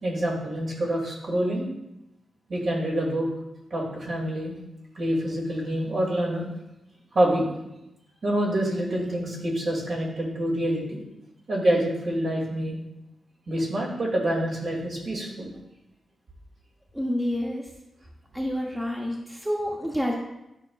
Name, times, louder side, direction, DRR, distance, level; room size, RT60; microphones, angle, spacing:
voice 1, 0.0-1.7 2.5-3.3 3.7-4.5 4.9-6.5 7.1-7.5 8.2-11.0 11.5-12.8 13.5-15.5, right 1 dB, 55° right, -3 dB, 2.4 m, -26 dB
voice 2, 16.9-17.7 18.3-20.2, equal, 5° right, -1 dB, 0.8 m, -28 dB
11.5 x 5.4 x 2.4 m, 0.90 s
wide cardioid pair, 110°, 0 cm